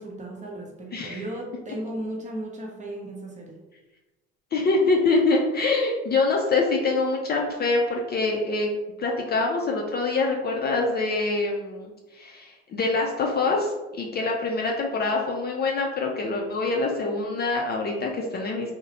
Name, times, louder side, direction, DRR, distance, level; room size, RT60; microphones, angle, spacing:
voice 1, 0.0-3.6, right 1 dB, 25° right, -2 dB, 0.8 m, -35 dB
voice 2, 0.9-1.2 4.5-8.7 9.0-18.7, left 3 dB, 35° left, 0 dB, 0.4 m, -25 dB
2.6 x 2.1 x 2.9 m, 1.1 s
hypercardioid pair, 70°, 30 cm